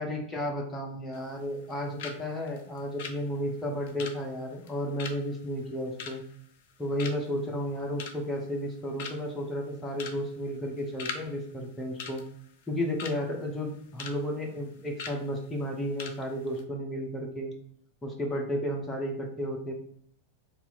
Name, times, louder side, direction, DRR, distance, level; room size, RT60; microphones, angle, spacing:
voice 1, 0.0-6.2 6.8-12.2 12.7-17.5 18.0-19.7, equal, 10° left, 0 dB, 0.7 m, -33 dB
sound 1, 1.1-1.7 2.0-2.2 2.5-6.7 7.0-7.4 7.8-8.4 8.7-8.8 9.0-9.4 9.9-10.2 10.5-11.2 11.5-11.6 12.0-13.2 13.6-14.2 14.4-14.6 15.0-15.2 15.6-15.7 16.0-16.2 16.4-16.6, left 5 dB, 50° left, 0.5 m, -40 dB
2.8 x 2.4 x 3.9 m, 0.64 s
figure-of-eight pair, 90°, 0 cm